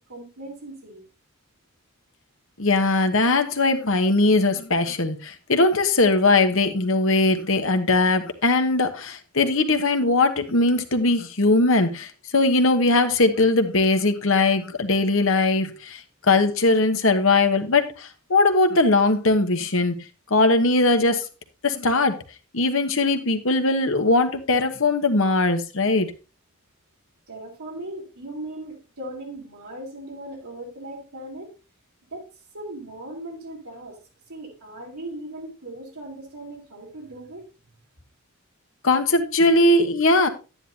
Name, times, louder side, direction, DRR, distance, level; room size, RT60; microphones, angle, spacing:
voice 1, 0.1-1.0 27.3-31.5 32.1-32.2 32.5-34.0 34.3-37.4, right 1 dB, 85° right, 3.2 m, -38 dB
voice 2, 2.6-16.0 16.3-20.0 20.3-21.2 21.6-22.2 22.5-26.1 38.8-40.3, left 2 dB, 60° left, 1.2 m, -20 dB
10.0 x 10.0 x 2.8 m
head